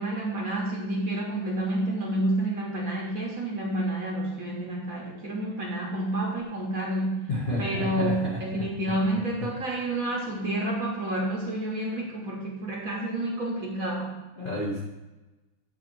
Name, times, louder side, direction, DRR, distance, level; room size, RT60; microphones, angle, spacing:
voice 1, 0.0-7.3 7.6-14.2, right 1 dB, 50° right, -2 dB, 1.1 m, -29 dB
voice 2, 7.3-9.5 14.4-14.8, left 1 dB, 45° left, -4 dB, 0.6 m, -32 dB
7.6 x 3.0 x 6.0 m, 1.1 s
omnidirectional pair, 2.4 m